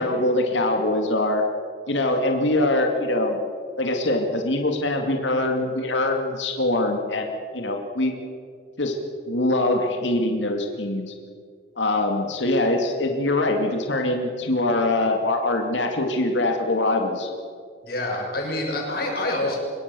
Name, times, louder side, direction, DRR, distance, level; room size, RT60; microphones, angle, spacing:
voice 1, 0.0-1.4 1.9-3.4 3.8-8.1 8.8-8.9 9.3-11.1 11.8-17.3, left 2 dB, 80° left, 3 dB, 2.5 m, -23 dB
voice 2, 17.8-19.6, left 1 dB, 55° left, -1 dB, 6.7 m, -26 dB
24.5 x 23.0 x 7.1 m, 2.1 s
head